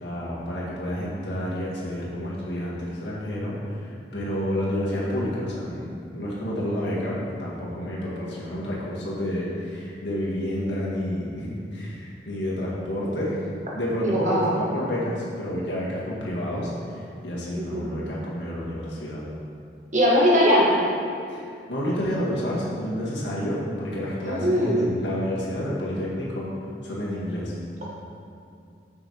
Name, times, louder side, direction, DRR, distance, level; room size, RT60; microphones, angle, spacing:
voice 1, 0.0-13.5 13.7-19.2 21.3-21.4 21.7-26.5 26.8-27.5, equal, 80° left, -6 dB, 1.8 m, -29 dB
voice 2, 14.0-14.5 17.5-17.9 19.9-20.7 24.2-24.8, equal, 45° right, -5 dB, 1.7 m, -20 dB
6.9 x 5.8 x 4.7 m, 2.4 s
head